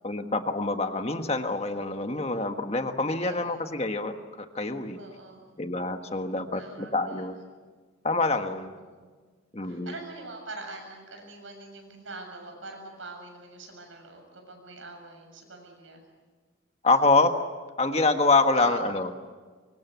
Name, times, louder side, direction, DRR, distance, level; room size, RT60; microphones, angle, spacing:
voice 1, 0.0-5.0 5.6-7.4 8.0-8.7 9.5-9.9 16.8-17.3 17.8-19.1, left 3 dB, 30° left, 6 dB, 1.4 m, -26 dB
voice 2, 3.2-3.6 5.0-5.5 6.5-7.3 8.8-9.1 9.6-16.0 18.5-19.0, right 2 dB, 85° right, 3 dB, 7.1 m, -43 dB
24.5 x 23.5 x 8.2 m, 1.5 s
head